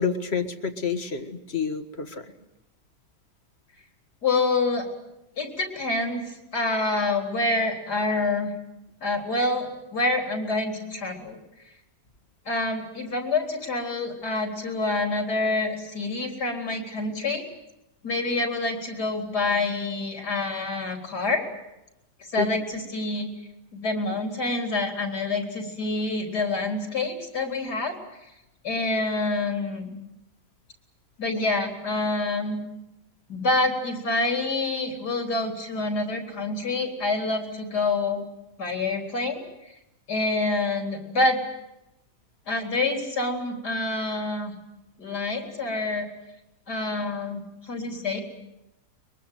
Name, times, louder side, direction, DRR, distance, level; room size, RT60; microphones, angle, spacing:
voice 1, 0.0-2.2 22.4-22.5, left 5 dB, 40° left, 9 dB, 1.9 m, -28 dB
voice 2, 4.2-4.9 5.4-6.2 6.5-8.5 9.0-11.4 12.5-17.4 18.0-21.5 22.3-23.3 23.7-28.0 28.6-29.8 31.2-32.6 33.3-38.2 38.6-39.4 40.1-41.4 42.5-44.5 45.0-46.1 46.7-48.2, left 2 dB, 70° left, 3 dB, 4.6 m, -27 dB
23.0 x 22.5 x 9.3 m, 0.91 s
omnidirectional pair, 1.8 m